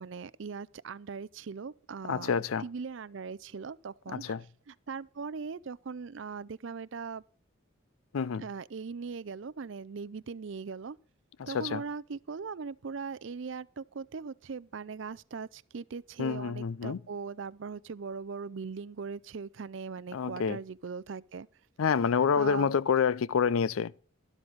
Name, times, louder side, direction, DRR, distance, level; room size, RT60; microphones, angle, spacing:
voice 1, 0.0-4.2 4.7-7.2 8.4-11.0 11.5-21.5 22.4-22.8, right 5 dB, 65° right, 0.5 m, -40 dB
voice 2, 2.1-2.6 4.1-4.4 8.1-8.4 11.4-11.8 16.2-17.0 20.1-20.6 21.8-23.9, left 6 dB, 85° left, 0.4 m, -28 dB
12.5 x 12.0 x 4.0 m
head